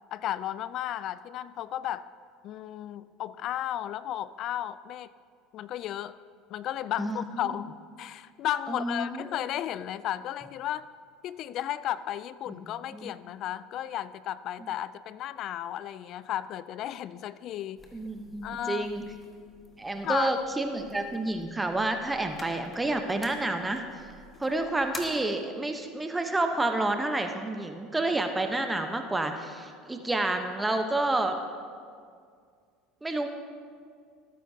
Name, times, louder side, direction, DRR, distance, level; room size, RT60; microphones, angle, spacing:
voice 1, 0.1-2.1 2.4-5.1 5.5-6.2 6.5-7.7 8.0-10.9 11.2-17.8 18.4-18.9 20.0-20.3, left 12 dB, 55° left, 17 dB, 0.3 m, -34 dB
voice 2, 7.0-7.5 8.7-9.3 12.5-12.6 12.9-13.1 17.9-19.0 19.8-23.8 24.4-31.4 33.0-33.3, right 2 dB, 15° right, 5 dB, 0.9 m, -29 dB
sound 1, 17.8-25.0, left 2 dB, 25° left, 1.6 m, -49 dB
18.0 x 9.4 x 2.8 m, 2.2 s
hypercardioid pair, 85°, 0 cm